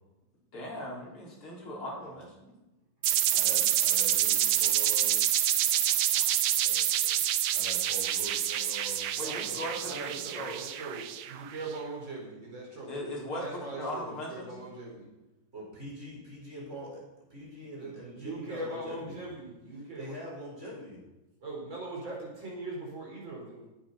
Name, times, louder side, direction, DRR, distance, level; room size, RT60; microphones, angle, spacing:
voice 1, 0.5-2.3 5.9-6.3 9.2-10.6 12.9-14.5, equal, 85° left, -3 dB, 5.0 m, -38 dB
sound 1, 3.0-11.6, right 11 dB, 80° right, 1.6 m, -27 dB
voice 2, 3.3-5.2 7.5-9.1 15.5-17.0 17.3-19.2 19.7-21.0, equal, 30° right, -3 dB, 5.5 m, -43 dB
voice 3, 6.6-7.2 9.2-13.0 13.4-15.0 17.5-20.1 21.4-23.7, right 2 dB, 65° right, -3 dB, 5.8 m, -41 dB
18.5 x 9.0 x 5.8 m, 1.0 s
omnidirectional pair, 2.3 m